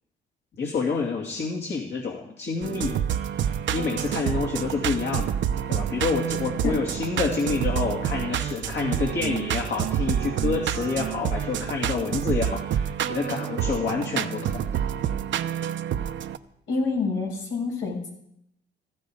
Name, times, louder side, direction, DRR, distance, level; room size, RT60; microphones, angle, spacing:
voice 1, 0.6-3.0 3.7-5.3 5.7-14.7, left 4 dB, 60° left, 0 dB, 2.8 m, -28 dB
sound 1, 2.6-16.4, right 9 dB, 70° right, 0.8 m, -28 dB
voice 2, 16.7-18.1, left 4 dB, 80° left, -1 dB, 6.9 m, -27 dB
16.0 x 16.0 x 5.0 m, 0.76 s
cardioid pair, 90°, 20 cm